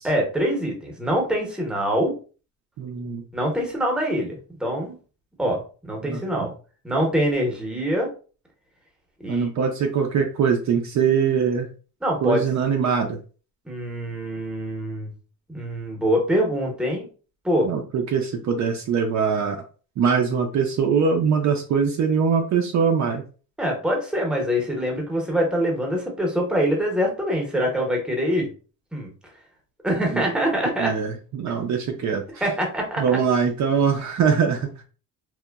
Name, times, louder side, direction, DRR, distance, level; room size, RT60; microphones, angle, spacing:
voice 1, 0.0-2.1 3.3-5.0 5.4-6.5 6.8-8.1 9.2-9.5 12.0-12.5 13.7-15.1 15.5-17.1 17.4-17.7 23.6-28.5 28.9-29.1 29.8-30.9 32.4-33.2, equal, ahead, 0 dB, 0.7 m, -24 dB
voice 2, 2.8-3.2 6.0-6.5 9.3-11.7 12.2-13.2 17.6-19.6 20.0-23.2 30.1-30.2 30.8-32.4 33.0-34.8, right 6 dB, 50° right, 3 dB, 0.5 m, -22 dB
2.9 x 2.1 x 2.2 m, 0.37 s
cardioid pair, 120°, 37 cm